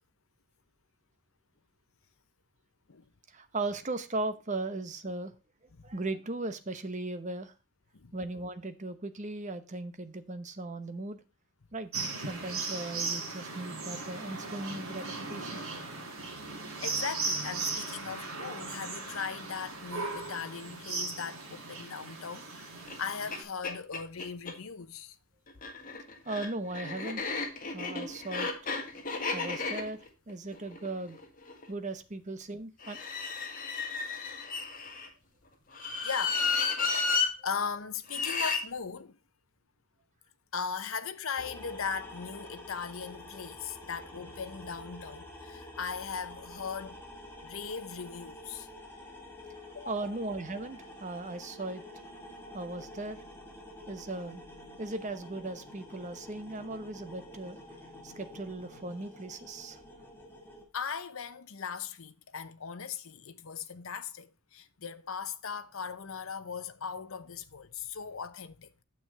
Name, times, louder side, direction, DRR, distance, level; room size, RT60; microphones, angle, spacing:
voice 1, 3.3-5.3 5.8-7.5 8.1-11.2 11.7-11.9 12.1-15.6 26.2-27.2 27.7-28.5 29.3-30.0 30.3-31.2 31.7-33.0 49.9-51.8 52.5-53.2 53.9-54.4 54.8-57.6 58.0-59.8, right 2 dB, 35° right, 0.9 m, -37 dB
sound 1, 11.9-23.4, right 3 dB, 75° right, 2.8 m, -37 dB
voice 2, 16.8-25.2 35.8-36.8 37.4-39.2 40.5-47.0 47.4-48.7 49.7-50.1 60.7-68.8, left 6 dB, 70° left, 0.8 m, -38 dB
sound 2, 22.9-23.0 23.3-23.4 23.6-24.6 25.5-31.6 32.8-35.1 35.7-37.3 38.1-38.6, left 4 dB, 40° left, 1.7 m, -33 dB
sound 3, 41.4-60.6, left 1 dB, 10° left, 2.0 m, -48 dB
9.1 x 7.2 x 3.3 m
head